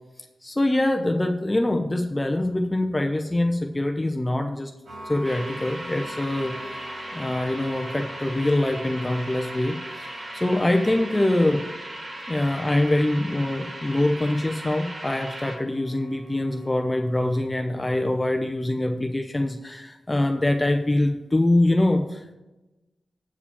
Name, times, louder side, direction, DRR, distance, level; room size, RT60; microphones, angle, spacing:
voice 1, 0.4-4.7 5.0-6.5 7.1-11.6 12.3-22.3, left 1 dB, 20° left, 4 dB, 0.7 m, -24 dB
sound 1, 4.8-17.4, right 1 dB, 70° right, 3.3 m, -45 dB
sound 2, 5.2-15.6, right 1 dB, 35° right, 2.0 m, -38 dB
8.5 x 4.8 x 7.1 m, 1.0 s
cardioid pair, 75°, 0 cm